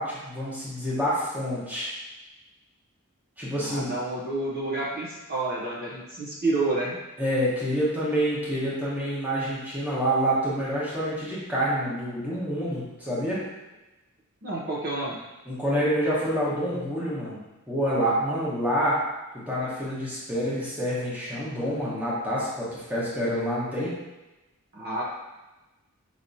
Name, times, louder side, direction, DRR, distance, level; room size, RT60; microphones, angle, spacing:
voice 1, 0.0-1.9 3.4-3.9 7.2-13.4 15.4-17.4 17.7-19.0 19.5-23.9, equal, 10° right, -8 dB, 1.1 m, -27 dB
voice 2, 3.6-7.0 14.4-15.2 24.7-25.0, right 2 dB, 45° right, -6 dB, 0.7 m, -29 dB
4.7 x 2.8 x 2.7 m, 1.1 s
head